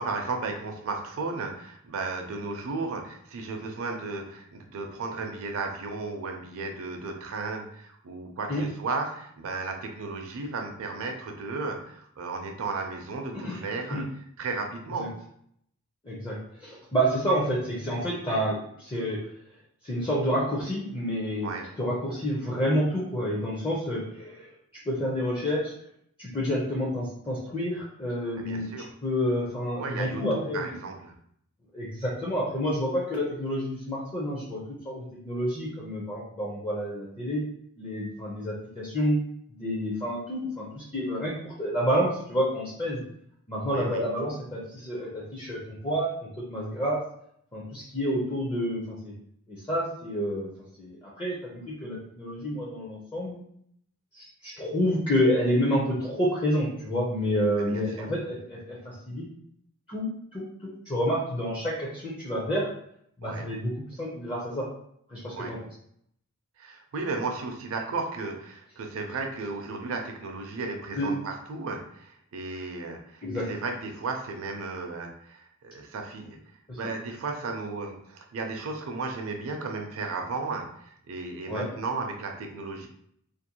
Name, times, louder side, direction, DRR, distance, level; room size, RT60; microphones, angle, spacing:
voice 1, 0.0-14.0 14.4-15.1 21.4-21.7 28.4-28.9 29.8-31.1 43.7-44.0 57.6-58.1 63.2-63.5 65.3-65.5 66.6-76.4 76.7-82.9, right 3 dB, 65° right, 3 dB, 0.5 m, -34 dB
voice 2, 16.0-19.2 19.8-21.5 21.8-24.5 24.9-25.7 26.2-28.7 29.0-30.7 31.7-34.6 34.8-37.4 37.8-39.2 39.6-43.0 43.5-47.0 47.5-49.1 49.5-50.5 50.8-53.4 54.1-59.2 59.9-62.7 63.2-63.7 64.0-64.7 65.1-65.6 70.9-71.1 73.2-73.5 76.7-76.8 81.5-81.7, equal, 20° left, -5 dB, 0.5 m, -29 dB
2.5 x 2.1 x 2.8 m, 0.68 s
head